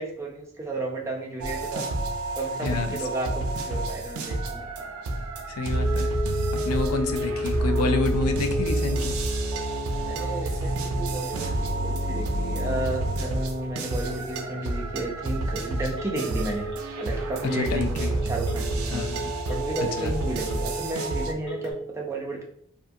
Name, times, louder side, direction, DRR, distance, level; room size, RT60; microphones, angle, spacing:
voice 1, 0.0-1.9 2.4-4.7 10.0-16.7 17.0-19.0 19.5-22.4, right 2 dB, 10° right, 0.3 m, -33 dB
sound 1, 1.4-21.3, right 2 dB, 80° right, 0.4 m, -29 dB
voice 2, 2.6-3.0 5.5-6.1 6.6-9.1 17.5-18.2 18.9-19.4 20.0-20.1, left 3 dB, 90° left, 0.4 m, -28 dB
Telephone, 5.7-21.7, left 1 dB, 55° left, 1.1 m, -35 dB
2.5 x 2.4 x 2.5 m
head